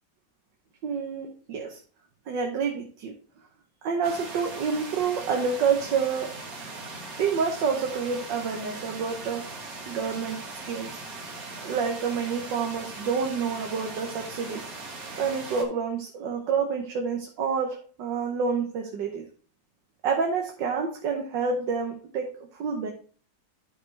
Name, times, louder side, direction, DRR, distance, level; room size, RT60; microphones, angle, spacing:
voice 1, 0.8-1.8 2.3-3.1 3.8-6.3 7.2-9.4 9.9-10.4 10.7-11.0 11.6-14.7 15.2-19.2 20.0-22.9, right 5 dB, 75° right, 2 dB, 1.7 m, -28 dB
sound 1, 4.0-15.6, right 3 dB, 55° right, 1.8 m, -40 dB
12.0 x 4.7 x 3.2 m, 0.42 s
omnidirectional pair, 2.0 m